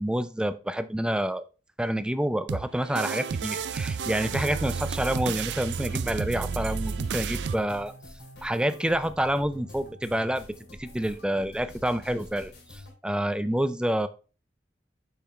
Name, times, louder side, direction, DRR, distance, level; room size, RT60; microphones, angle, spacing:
voice 1, 0.0-1.4 1.8-7.9 8.4-10.4 10.8-14.1, right 1 dB, 5° right, 12 dB, 0.4 m, -28 dB
sound 1, 2.5-7.5, right 5 dB, 80° right, 0.5 m, -31 dB
sound 2, 5.8-12.9, left 1 dB, 70° left, 2.7 m, -47 dB
6.8 x 5.9 x 3.2 m, 0.34 s
head